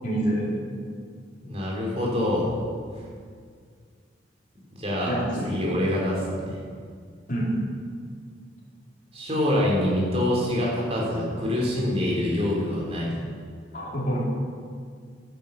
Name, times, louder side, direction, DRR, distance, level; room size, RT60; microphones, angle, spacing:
voice 1, 0.0-0.5 5.0-5.6 7.3-7.5 13.7-14.2, right 1 dB, 45° left, -5 dB, 3.8 m, -27 dB
voice 2, 1.4-2.5 4.8-5.2 5.4-6.6 9.1-13.2, left 1 dB, 35° right, -3 dB, 3.7 m, -25 dB
11.0 x 10.5 x 7.2 m, 2.1 s
head